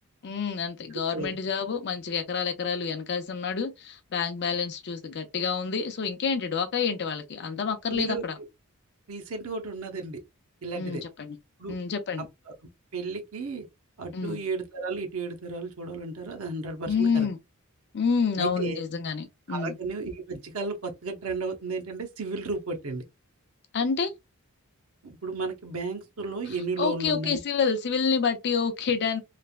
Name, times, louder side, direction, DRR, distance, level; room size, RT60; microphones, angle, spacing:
voice 1, 0.2-8.4 10.8-11.4 11.7-12.3 14.1-14.4 16.9-17.4 17.9-19.8 23.7-24.1 26.5-29.2, left 5 dB, 55° left, 0.5 m, -28 dB
voice 2, 0.9-1.3 7.9-8.2 9.1-10.2 10.6-11.0 11.6-11.7 12.2-12.3 12.9-13.6 14.0-17.3 18.4-18.8 19.5-23.0 25.0-27.4, right 3 dB, 80° right, 0.7 m, -33 dB
3.2 x 2.1 x 2.3 m
head